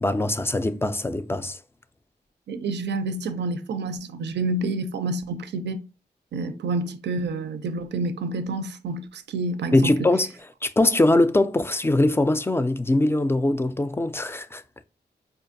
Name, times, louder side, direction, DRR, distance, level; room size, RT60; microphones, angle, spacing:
voice 1, 0.0-1.6 9.7-10.3 10.6-14.6, left 2 dB, 15° left, 0.3 m, -22 dB
voice 2, 2.5-5.8 6.3-10.1, right 2 dB, 90° right, 0.4 m, -28 dB
4.5 x 2.4 x 2.5 m
cardioid pair, 70°, 17 cm